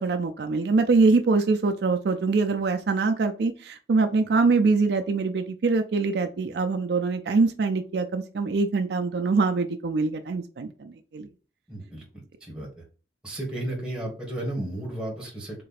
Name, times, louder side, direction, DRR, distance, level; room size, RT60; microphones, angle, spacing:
voice 1, 0.0-11.3, right 4 dB, 70° right, 6 dB, 0.4 m, -24 dB
voice 2, 11.7-12.0 12.4-12.7 13.2-15.6, right 1 dB, 5° right, -2 dB, 1.4 m, -33 dB
3.8 x 3.2 x 4.0 m, 0.38 s
head